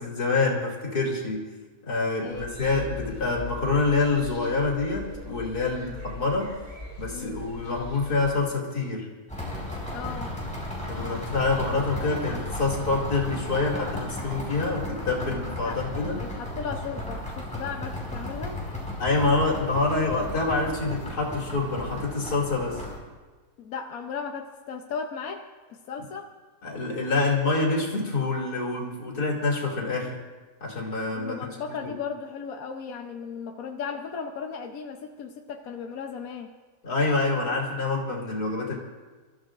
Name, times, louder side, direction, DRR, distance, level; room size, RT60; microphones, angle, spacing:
voice 1, 0.0-1.5 1.9-6.6 7.0-9.1 10.8-16.2 19.0-22.8 26.6-30.2 30.6-31.5 31.8-31.9 36.8-38.8, left 3 dB, 85° left, -3 dB, 3.3 m, -26 dB
voice 2, 2.2-2.5 5.7-6.0 7.1-7.4 9.9-10.3 15.6-15.8 16.2-18.6 23.6-26.3 31.1-36.5, left 6 dB, 70° left, 3 dB, 1.2 m, -36 dB
sound 1, 2.3-8.3, left 1 dB, 30° right, 5.2 m, -41 dB
sound 2, 9.3-23.0, left 1 dB, 5° left, 4.8 m, -35 dB
29.5 x 14.0 x 2.6 m, 1.4 s
omnidirectional pair, 1.6 m